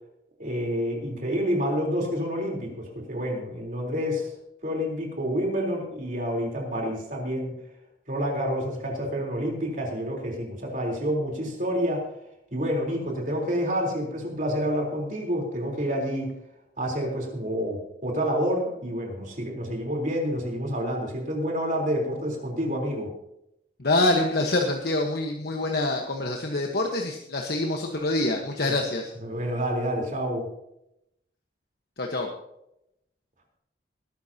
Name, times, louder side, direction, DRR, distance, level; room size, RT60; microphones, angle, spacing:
voice 1, 0.4-4.3 4.6-7.6 8.1-12.0 12.5-16.3 16.8-23.1 28.6-28.8 29.2-30.5, equal, 50° right, 0 dB, 3.9 m, -28 dB
voice 2, 23.8-29.1 32.0-32.3, left 2 dB, 60° left, 1 dB, 1.3 m, -26 dB
20.5 x 12.5 x 2.9 m, 0.83 s
head